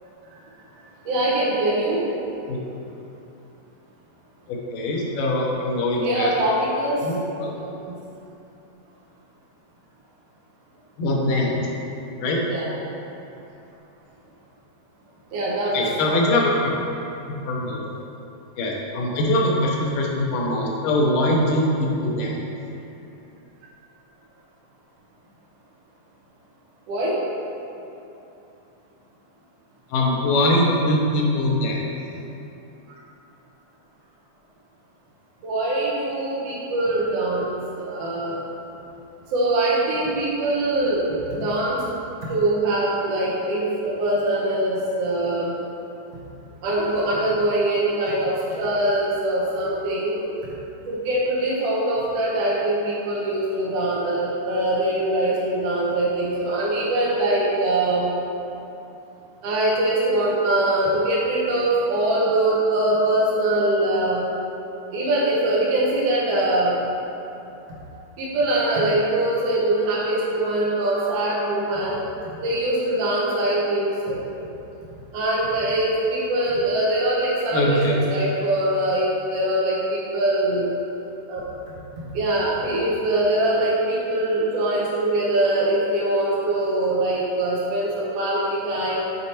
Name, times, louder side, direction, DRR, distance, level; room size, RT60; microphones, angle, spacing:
voice 1, 1.0-2.0 6.0-7.0 7.8-7.9 12.5-12.7 15.3-15.8 26.9-27.1 35.4-38.4 39.3-41.0 41.3-41.8 42.3-45.5 46.6-50.2 50.9-58.1 59.4-64.3 64.9-66.8 68.2-72.0 72.4-74.2 75.1-80.7 81.3-81.4 82.1-89.0, right 1 dB, 70° right, -6 dB, 1.6 m, -23 dB
voice 2, 4.5-6.3 7.0-7.5 11.0-11.7 12.2-12.4 15.7-16.5 17.3-17.8 18.6-22.5 29.9-31.9 77.5-78.0, left 1 dB, 85° left, -2 dB, 2.5 m, -22 dB
6.8 x 4.2 x 4.2 m, 2.8 s
omnidirectional pair, 3.7 m